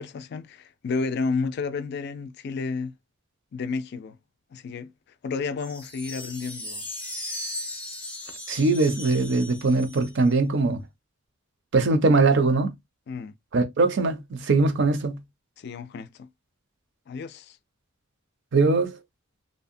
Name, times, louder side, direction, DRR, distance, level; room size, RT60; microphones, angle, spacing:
voice 1, 0.0-2.9 3.5-4.2 4.5-4.9 5.2-6.9 13.1-13.3 15.6-16.3 17.1-17.6, left 4 dB, 50° left, 0.3 m, -31 dB
sound 1, 5.6-10.3, left 1 dB, 5° left, 0.6 m, -37 dB
voice 2, 8.5-10.8 11.7-12.7 13.5-15.2 18.5-19.0, right 3 dB, 55° right, 0.5 m, -21 dB
2.7 x 2.1 x 2.5 m
head